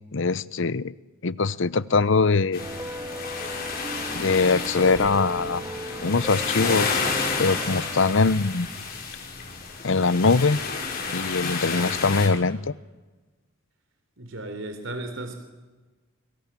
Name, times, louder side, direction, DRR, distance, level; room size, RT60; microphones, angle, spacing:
voice 1, 0.1-0.9 1.2-2.6 4.1-5.6 6.0-6.9 7.4-8.7 9.8-10.6 11.1-12.7, left 4 dB, 65° left, 19 dB, 0.8 m, -22 dB
sound 1, 2.5-12.3, left 4 dB, 45° left, 5.5 m, -31 dB
sound 2, 2.6-8.1, right 1 dB, 15° right, 1.5 m, -37 dB
voice 2, 14.2-15.3, right 2 dB, 65° right, 6 dB, 3.8 m, -34 dB
29.5 x 24.5 x 7.6 m, 1.2 s
head